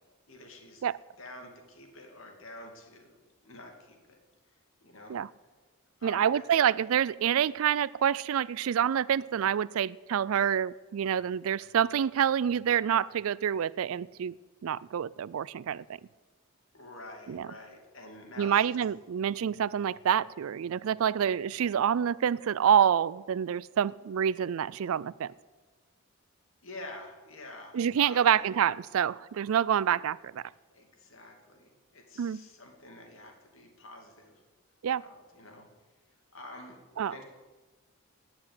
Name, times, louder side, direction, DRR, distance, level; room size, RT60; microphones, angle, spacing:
voice 1, 0.3-0.8 1.2-3.2 3.4-4.2 4.8-5.2 6.0-6.4 16.7-18.8 26.6-28.4 30.7-34.4 35.0-35.7 36.3-36.8 37.1-37.2, left 2 dB, 65° left, 2.5 m, -48 dB
voice 2, 6.0-14.4 14.6-16.0 17.3-17.5 18.4-25.3 27.7-30.4 32.2-32.4 34.8-35.0 37.0-37.2, right 8 dB, 70° right, 0.3 m, -27 dB
17.5 x 6.1 x 9.7 m
head